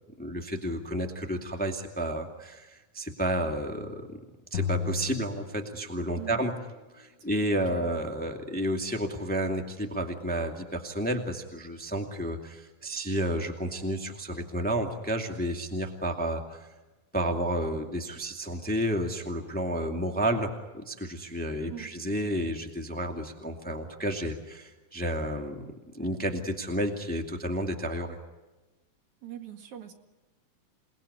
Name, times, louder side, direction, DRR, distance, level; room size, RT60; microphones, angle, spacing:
voice 1, 0.2-4.2 4.5-6.5 6.9-16.7 17.1-25.6 25.9-28.2, right 1 dB, 5° left, 4 dB, 1.9 m, -31 dB
sound 1, 4.5-6.3, left 7 dB, 85° left, 1.0 m, -34 dB
voice 2, 6.1-6.5 7.2-7.3 7.7-7.9 21.7-21.9 29.2-29.9, right 10 dB, 70° right, 6 dB, 3.1 m, -42 dB
28.0 x 20.0 x 9.8 m, 1.2 s
omnidirectional pair, 3.5 m